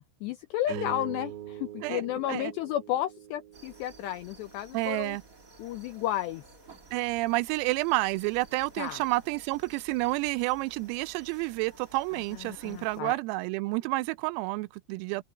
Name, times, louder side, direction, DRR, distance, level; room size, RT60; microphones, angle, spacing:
voice 1, 0.0-5.2 5.6-6.4 8.8-9.0 12.4-13.1, left 13 dB, 85° left, 2.4 m, -32 dB
sound 1, 0.6-5.2, right 9 dB, 65° right, 3.5 m, -43 dB
sound 2, 3.5-13.0, right 3 dB, 35° right, 1.4 m, -54 dB
voice 2, 4.7-5.2 6.9-15.2, right 21 dB, 90° right, 3.4 m, -30 dB
omnidirectional pair, 6.0 m